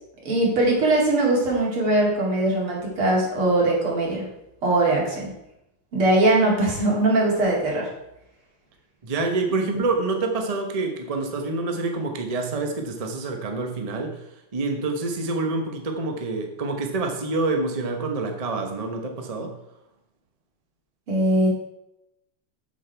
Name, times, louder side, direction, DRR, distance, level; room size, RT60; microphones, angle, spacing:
voice 1, 0.2-4.2 4.6-5.3 5.9-7.9 21.1-21.5, right 2 dB, 80° right, -3 dB, 3.3 m, -21 dB
voice 2, 9.0-14.2 14.5-19.6, right 3 dB, 35° right, 3 dB, 0.5 m, -27 dB
7.6 x 7.4 x 4.6 m, 0.87 s
omnidirectional pair, 2.3 m